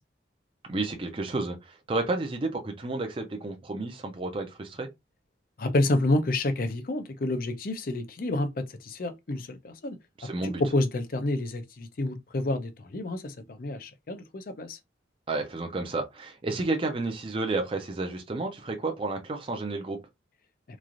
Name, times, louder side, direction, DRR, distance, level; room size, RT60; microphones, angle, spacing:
voice 1, 0.7-4.9 10.2-10.6 15.3-20.0, right 2 dB, 30° right, 0.4 m, -31 dB
voice 2, 5.6-10.0 10.4-14.8, left 2 dB, 50° left, 0.5 m, -29 dB
3.1 x 2.4 x 2.4 m
head